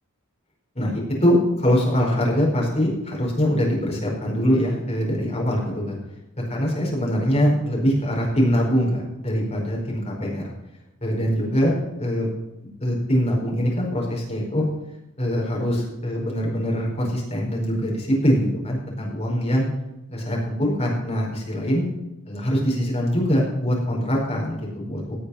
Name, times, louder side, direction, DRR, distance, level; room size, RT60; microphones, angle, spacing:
voice 1, 0.7-6.0 6.5-10.4 11.0-12.3 12.8-14.7 15.2-19.6 20.1-21.8 22.2-25.2, equal, 30° left, -2 dB, 4.9 m, -23 dB
18.0 x 6.7 x 5.8 m, 0.97 s
head